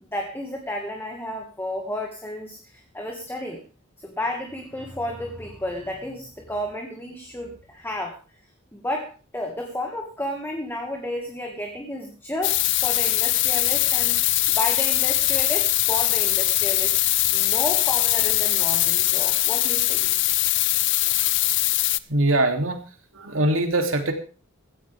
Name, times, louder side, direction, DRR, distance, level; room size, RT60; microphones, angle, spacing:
voice 1, 0.1-3.6 4.0-8.2 8.7-14.2 14.5-20.0, left 1 dB, 10° left, 1 dB, 2.1 m, -32 dB
sound 1, 12.4-22.0, left 17 dB, 60° left, 0.6 m, -21 dB
voice 2, 22.1-24.1, right 1 dB, 75° right, 4 dB, 3.1 m, -23 dB
17.0 x 15.0 x 3.6 m, 0.35 s
head